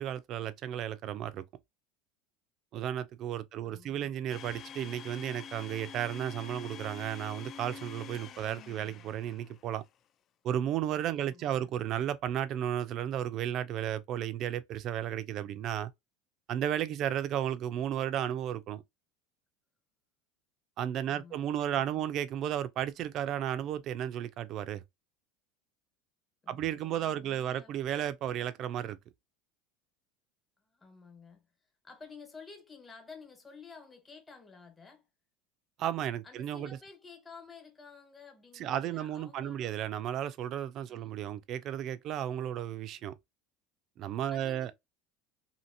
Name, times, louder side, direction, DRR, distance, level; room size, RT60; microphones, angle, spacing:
voice 1, 0.0-1.4 2.7-9.8 10.4-15.9 16.5-18.8 20.8-24.8 26.5-29.0 35.8-36.8 38.6-43.2 44.0-44.7, right 10 dB, 50° right, 0.4 m, -33 dB
voice 2, 3.6-4.1 11.2-11.7 21.1-22.1 26.4-27.8 30.6-35.1 36.2-39.7 40.9-41.2 44.3-44.7, left 5 dB, 20° left, 1.2 m, -52 dB
Domestic sounds home sounds, 4.3-9.8, left 7 dB, 45° left, 0.4 m, -47 dB
2.8 x 2.7 x 2.6 m
supercardioid pair, 100°, 0 cm